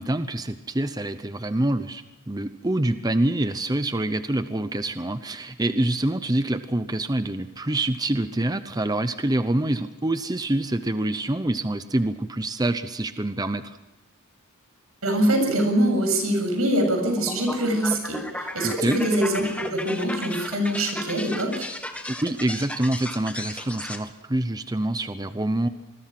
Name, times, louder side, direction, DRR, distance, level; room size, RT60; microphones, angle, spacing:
voice 1, 0.0-13.8 18.6-19.0 22.1-25.7, right 1 dB, 20° right, 10 dB, 0.8 m, -26 dB
voice 2, 15.0-21.7, right 1 dB, 90° right, 6 dB, 7.3 m, -24 dB
sound 1, 17.0-24.0, left 1 dB, 5° left, 1.7 m, -35 dB
26.5 x 21.0 x 6.0 m, 0.93 s
head